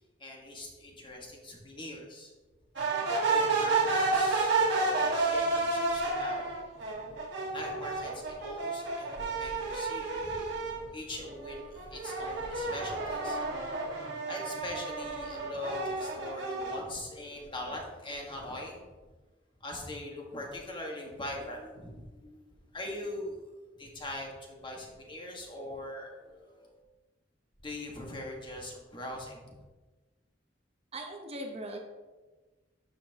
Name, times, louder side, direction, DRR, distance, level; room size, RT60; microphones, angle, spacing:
voice 1, 0.2-2.3 3.2-6.6 7.5-10.3 10.9-13.6 14.3-18.8 19.6-22.4 22.7-26.7 27.6-29.6, left 1 dB, 25° left, -1 dB, 1.6 m, -42 dB
sound 1, 2.8-10.9 11.3-16.8, right 3 dB, 70° right, 1.7 m, -31 dB
voice 2, 30.9-31.8, right 1 dB, 35° right, 2 dB, 0.9 m, -39 dB
12.0 x 5.8 x 2.9 m, 1.3 s
head